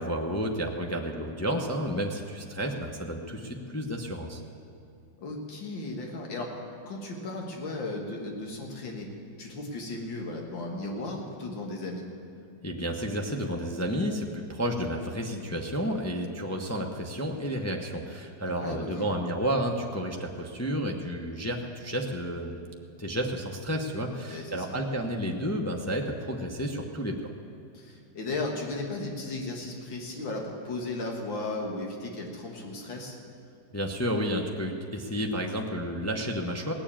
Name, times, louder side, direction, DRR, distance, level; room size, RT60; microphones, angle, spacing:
voice 1, 0.0-4.4 12.6-22.6 23.0-27.2 33.7-36.7, equal, 25° left, 1 dB, 0.3 m, -31 dB
voice 2, 5.2-6.5 6.9-9.1 9.4-12.0 18.5-19.1 24.2-24.8 27.7-33.2, left 2 dB, 85° left, 1 dB, 2.4 m, -35 dB
18.0 x 7.2 x 8.7 m, 2.6 s
omnidirectional pair, 2.0 m